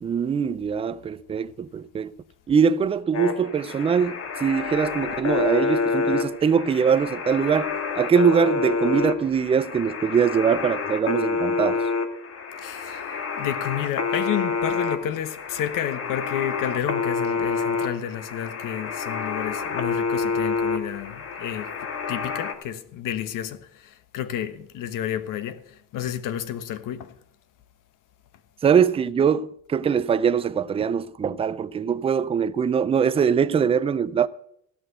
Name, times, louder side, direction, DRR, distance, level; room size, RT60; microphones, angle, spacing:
voice 1, 0.0-2.1 2.5-11.8 28.6-34.3, right 7 dB, 15° right, 0.4 m, -22 dB
sound 1, 3.1-22.5, left 4 dB, 40° left, 1.8 m, -28 dB
voice 2, 12.6-27.2, left 10 dB, 60° left, 1.2 m, -31 dB
15.5 x 6.0 x 7.9 m
cardioid pair, 145°, 36 cm